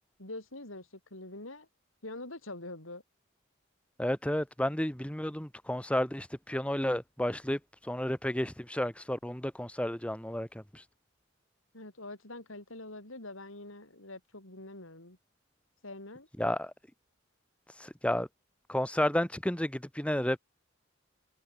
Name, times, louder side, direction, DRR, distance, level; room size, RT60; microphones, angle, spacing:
voice 1, 0.2-1.7 2.0-3.0 11.7-15.2 15.8-16.3, left 2 dB, 85° left, 6.9 m, -44 dB
voice 2, 4.0-10.9 16.4-16.7 17.7-18.3 18.7-20.4, left 1 dB, 5° left, 1.2 m, -32 dB
head